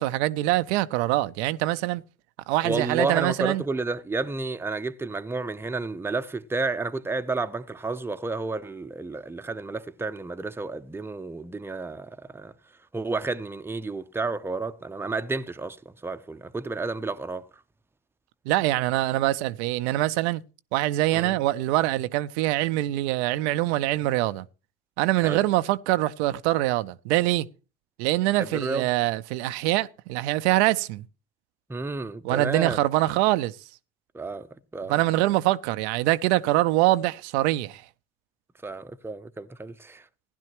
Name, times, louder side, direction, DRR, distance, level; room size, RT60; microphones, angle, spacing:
voice 1, 0.0-2.0 2.5-3.6 18.5-20.4 20.7-24.5 25.0-27.5 28.0-31.0 32.2-33.5 34.9-37.8, right 16 dB, 80° right, 0.5 m, -24 dB
voice 2, 2.6-12.5 12.9-15.8 16.0-17.5 21.1-21.3 25.2-25.4 28.4-28.9 31.7-32.8 34.1-35.0 38.6-40.0, right 3 dB, 5° right, 0.6 m, -31 dB
15.5 x 10.5 x 3.0 m
hypercardioid pair, 70°, 32 cm